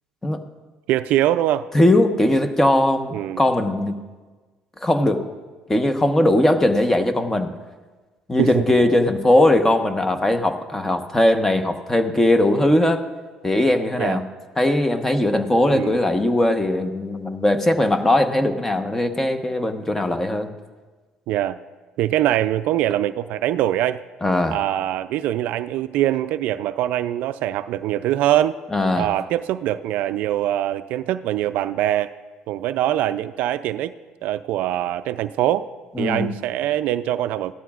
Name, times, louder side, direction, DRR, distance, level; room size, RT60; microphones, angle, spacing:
voice 1, 0.9-1.7 3.1-3.4 8.4-8.8 14.0-14.2 15.7-16.0 21.3-21.6 22.0-24.0 24.5-28.6 29.0-32.1 32.5-33.9 34.2-35.7 36.0-37.5, right 13 dB, 70° right, 12 dB, 0.4 m, -23 dB
voice 2, 1.7-4.0 4.8-5.2 5.7-7.5 8.3-13.0 13.4-14.2 14.6-20.5 24.2-24.6 28.7-29.1 36.0-36.3, left 1 dB, 15° left, 7 dB, 1.0 m, -19 dB
17.0 x 12.5 x 2.4 m, 1.3 s
supercardioid pair, 85°, 3 cm